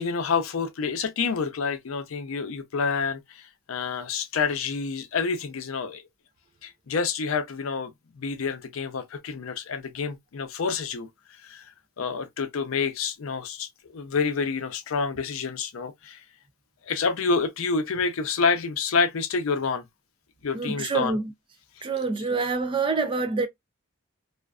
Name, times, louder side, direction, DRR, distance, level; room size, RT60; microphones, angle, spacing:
voice 1, 0.0-6.0 6.6-7.9 8.2-11.1 11.4-11.7 12.0-16.2 16.9-19.8 20.4-21.2, left 5 dB, 70° left, 0.5 m, -28 dB
voice 2, 20.5-21.3 21.8-23.5, right 4 dB, 25° right, 0.3 m, -26 dB
2.4 x 2.3 x 2.2 m
head